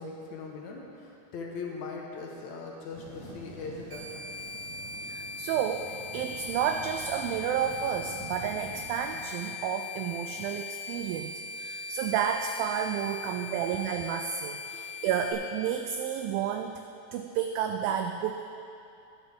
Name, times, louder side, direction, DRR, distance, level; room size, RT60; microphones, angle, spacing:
voice 1, 0.0-4.2 6.1-6.2, left 4 dB, 65° left, -2 dB, 2.0 m, -40 dB
sound 1, 2.9-9.2, right 2 dB, 35° right, 1.7 m, -47 dB
sound 2, 3.9-15.3, left 4 dB, 50° right, 2.5 m, -40 dB
voice 2, 5.0-16.8 17.1-18.4, right 8 dB, 85° right, 5 dB, 2.1 m, -31 dB
21.0 x 7.1 x 3.6 m, 2.7 s
omnidirectional pair, 4.6 m